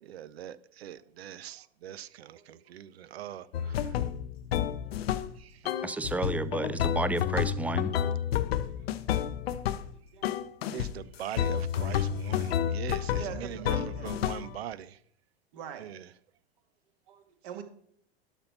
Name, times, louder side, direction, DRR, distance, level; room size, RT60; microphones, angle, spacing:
voice 1, 0.0-3.9 5.4-5.6 10.7-15.0 15.8-16.1, right 10 dB, 70° right, 0.7 m, -42 dB
sound 1, 3.5-5.4 5.7-9.9 10.2-10.9 11.4-14.6, left 10 dB, 70° left, 0.7 m, -30 dB
voice 2, 5.8-7.9, right 2 dB, 5° right, 0.4 m, -31 dB
voice 3, 8.7-9.3 9.6-9.8 10.1-10.2 12.8-14.1 15.5-15.9 17.1-17.6, right 9 dB, 55° right, 1.7 m, -46 dB
12.0 x 4.5 x 5.8 m
hypercardioid pair, 95°, 32 cm